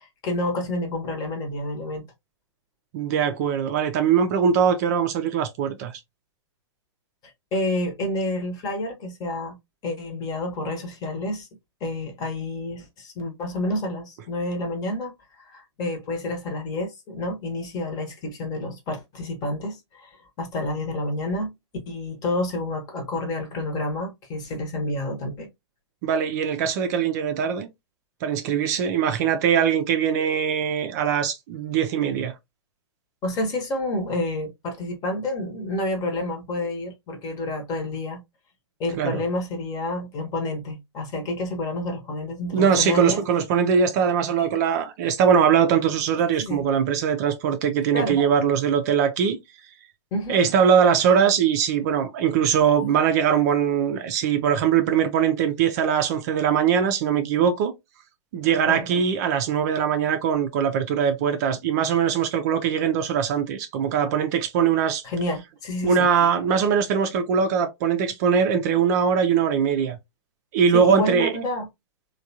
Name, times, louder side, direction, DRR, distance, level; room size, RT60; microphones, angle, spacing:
voice 1, 0.0-2.1 7.5-9.6 9.8-11.5 11.8-21.5 21.9-25.5 33.2-38.2 38.8-43.2 44.4-44.5 46.4-46.6 47.9-48.2 50.1-50.4 58.7-58.9 65.0-66.1 70.7-71.7, left 1 dB, 25° left, 1.0 m, -29 dB
voice 2, 2.9-6.0 26.0-27.7 28.2-32.3 39.0-39.2 42.5-49.4 50.3-57.7 58.3-65.0 65.8-70.0 70.5-71.3, right 7 dB, 35° right, 0.5 m, -21 dB
3.3 x 2.3 x 2.7 m
figure-of-eight pair, 110°, 15 cm